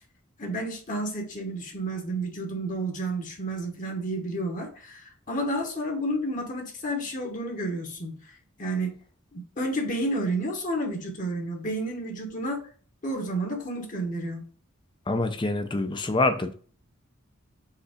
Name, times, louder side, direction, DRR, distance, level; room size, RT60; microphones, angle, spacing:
voice 1, 0.4-8.9 9.3-12.6 13.0-14.4, right 1 dB, 40° left, 1.1 m, -31 dB
voice 2, 15.1-16.5, left 2 dB, 25° left, 0.6 m, -26 dB
4.9 x 4.0 x 5.0 m
head